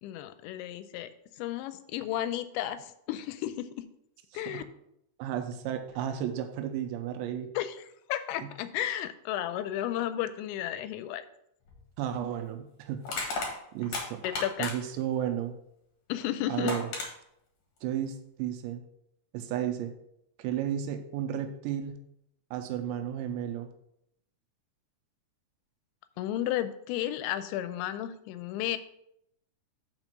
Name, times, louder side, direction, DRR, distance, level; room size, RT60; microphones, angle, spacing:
voice 1, 0.0-1.1 1.4-3.8 4.3-4.6 7.6-7.8 8.1-11.3 14.2-14.7 16.1-16.7 26.2-28.8, left 12 dB, 85° left, 12 dB, 2.8 m, -33 dB
voice 2, 4.3-4.6 5.2-7.5 8.4-8.5 12.0-13.0 13.7-14.2 14.6-15.6 16.5-16.9 17.8-18.8 19.3-19.9 20.4-22.0 22.5-23.7, right 10 dB, 90° right, 6 dB, 3.0 m, -33 dB
Crushing, 11.7-11.8 13.0-15.0 16.2-16.3 16.7-17.1, left 3 dB, 55° left, 2.1 m, -34 dB
6.0 x 5.2 x 6.1 m, 0.76 s
omnidirectional pair, 5.3 m